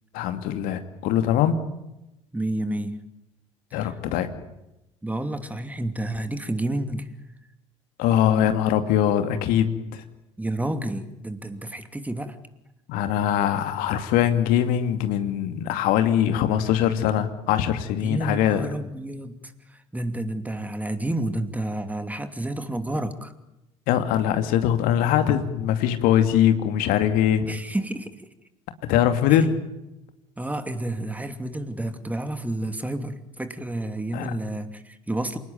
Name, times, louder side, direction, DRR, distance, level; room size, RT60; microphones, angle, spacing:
voice 1, 0.1-1.6 3.7-4.3 8.0-10.0 12.9-18.7 23.9-27.5 28.9-29.6 34.1-34.3, left 10 dB, 60° left, 8 dB, 2.6 m, -22 dB
voice 2, 2.3-3.0 3.7-3.9 5.0-7.1 10.4-12.4 18.0-23.3 27.4-28.3 29.3-29.4 30.4-35.4, right 1 dB, 10° right, 9 dB, 2.8 m, -30 dB
28.0 x 19.5 x 9.4 m, 0.92 s
figure-of-eight pair, 60°, 16 cm